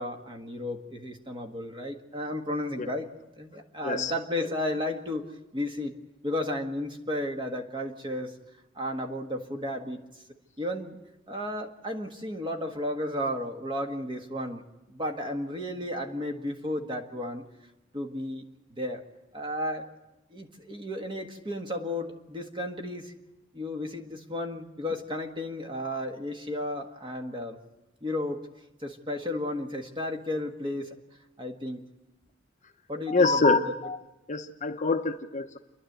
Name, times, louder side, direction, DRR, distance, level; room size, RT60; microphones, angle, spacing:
voice 1, 0.0-3.1 3.4-5.9 6.2-8.3 8.7-10.0 10.6-11.0 11.3-14.6 14.9-17.4 17.9-18.4 18.8-19.0 19.3-19.9 20.3-23.1 23.5-27.6 28.0-28.5 28.8-30.9 31.4-31.8 32.9-33.6, left 1 dB, 25° right, 4 dB, 1.7 m, -33 dB
voice 2, 32.9-34.0 34.3-35.6, left 3 dB, 35° left, 6 dB, 0.8 m, -25 dB
29.5 x 11.0 x 8.0 m, 0.97 s
head